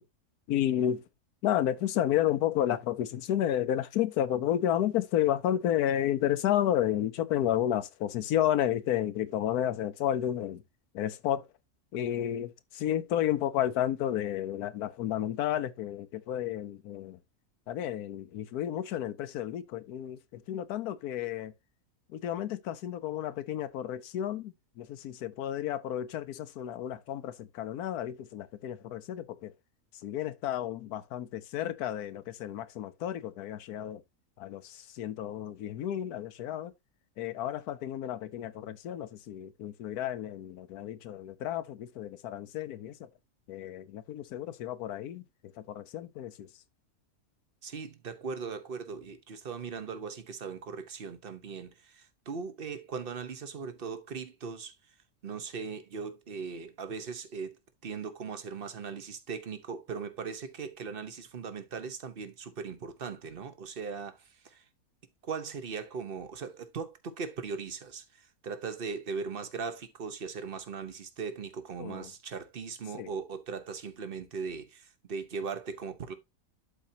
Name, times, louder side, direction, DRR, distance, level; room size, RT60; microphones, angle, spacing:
voice 1, 0.5-1.0 1.4-10.6 10.9-11.4 11.9-17.2 17.7-21.5 22.1-29.5 30.0-34.0 34.4-36.7 37.2-43.1 43.5-45.2 45.6-46.5 71.8-72.1 72.9-73.1, left 11 dB, 90° left, 1.2 m, -31 dB
voice 2, 47.6-54.7 55.2-57.6 57.8-64.6 65.2-76.1, right 5 dB, 45° right, 1.0 m, -39 dB
11.5 x 4.4 x 2.7 m
omnidirectional pair, 1.6 m